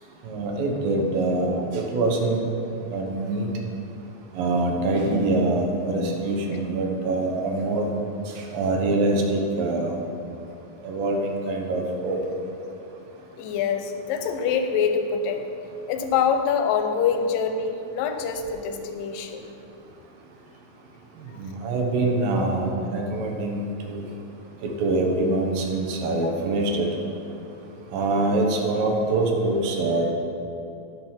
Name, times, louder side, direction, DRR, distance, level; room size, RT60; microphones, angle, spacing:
voice 1, 0.2-2.4 2.9-3.5 4.3-7.9 8.5-10.0 10.8-12.2 21.4-24.1 24.6-26.9 27.9-30.1, right 2 dB, 80° right, 1 dB, 2.8 m, -24 dB
voice 2, 13.4-15.4 15.9-19.5 26.2-26.3, left 6 dB, 80° left, 6 dB, 2.2 m, -25 dB
10.0 x 6.1 x 5.6 m, 2.7 s
omnidirectional pair, 4.1 m